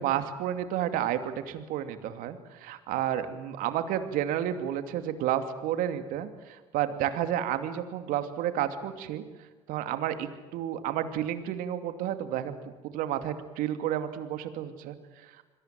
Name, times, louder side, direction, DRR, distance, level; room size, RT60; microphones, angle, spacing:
voice 1, 0.0-9.2 9.7-12.6 12.8-15.0 15.2-15.4, right 11 dB, 70° right, 9 dB, 2.6 m, -31 dB
28.0 x 22.0 x 7.6 m, 1.3 s
hypercardioid pair, 65°, 15 cm